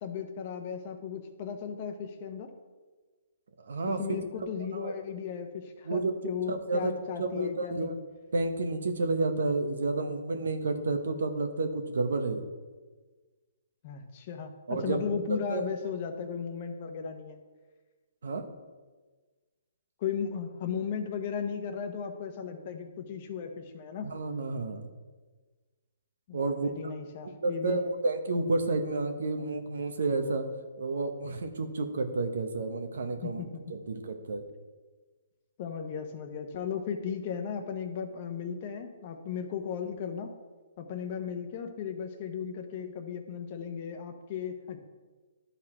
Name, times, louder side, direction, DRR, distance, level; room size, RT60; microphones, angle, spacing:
voice 1, 0.0-2.5 3.9-8.0 13.8-17.4 20.0-24.1 26.3-27.8 33.2-33.7 35.6-40.3 40.8-44.8, left 7 dB, 40° left, 6 dB, 0.9 m, -36 dB
voice 2, 3.6-4.0 4.7-4.9 5.4-5.5 5.8-6.1 6.5-6.9 7.2-8.0 8.3-12.5 14.7-15.7 18.2-18.4 24.0-24.9 26.3-26.7 27.4-30.5 30.8-33.4 33.7-34.4, right 3 dB, 75° right, 7 dB, 1.0 m, -30 dB
11.5 x 4.2 x 4.4 m, 1.3 s
hypercardioid pair, 150°, 0 cm